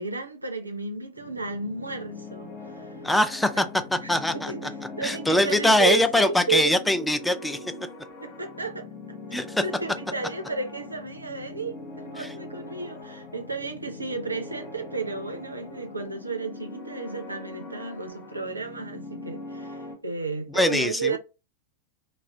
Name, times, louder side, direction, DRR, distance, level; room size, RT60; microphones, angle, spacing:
voice 1, 0.0-3.1 3.5-3.7 4.0-6.7 8.2-8.9 9.3-21.2, right 4 dB, 80° right, 0.3 m, -33 dB
sound 1, 1.2-20.0, left 3 dB, 45° left, 0.7 m, -41 dB
voice 2, 3.0-3.7 3.9-4.5 5.0-7.6 9.3-9.6 12.2-12.3 20.5-21.2, left 1 dB, 5° left, 0.3 m, -22 dB
2.3 x 2.1 x 3.3 m
figure-of-eight pair, 90°, 0 cm